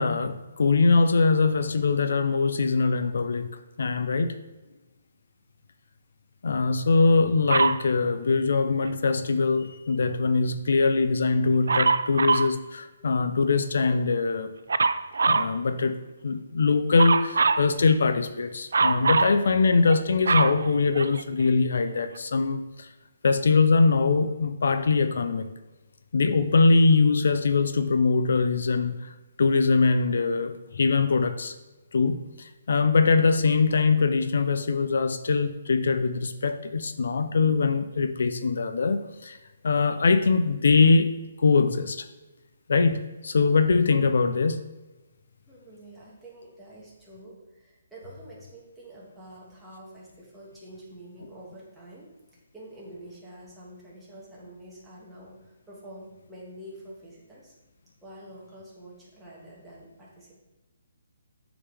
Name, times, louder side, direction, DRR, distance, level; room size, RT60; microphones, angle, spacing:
voice 1, 0.0-3.5 3.8-4.4 6.4-14.5 15.3-16.0 16.2-22.9 23.2-25.5 26.1-29.1 29.4-31.6 31.9-39.4 39.6-41.1 41.4-42.1 42.7-44.6, left 4 dB, 70° left, 9 dB, 0.5 m, -22 dB
Dog, 7.5-7.9 11.7-12.5 14.7-15.5 17.0-17.7 18.7-19.4 19.9-21.4 22.2-22.3, right 4 dB, 85° right, 0.4 m, -23 dB
voice 2, 45.5-57.5 58.0-60.4, right 1 dB, 5° right, -7 dB, 1.6 m, -47 dB
8.7 x 4.9 x 3.5 m, 1.1 s
hypercardioid pair, 165°, 0 cm